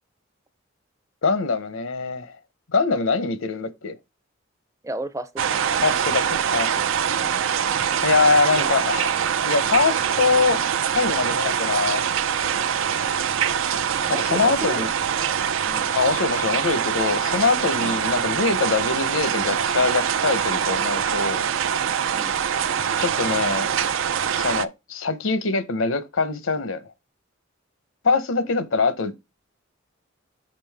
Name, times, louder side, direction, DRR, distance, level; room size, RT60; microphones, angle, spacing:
voice 1, 1.2-2.4 2.7-3.9 5.8-6.8 8.0-12.0 14.1-14.9 15.9-21.5 23.0-23.7 24.3-26.8 28.0-29.1, left 4 dB, 80° left, 0.9 m, -23 dB
voice 2, 4.8-5.8 7.2-7.4 14.0-14.9 15.6-16.0 17.8-18.0 22.1-22.4, right 2 dB, 15° right, 0.5 m, -34 dB
sound 1, 5.4-24.7, right 8 dB, 80° right, 0.5 m, -24 dB
6.0 x 5.3 x 3.4 m
head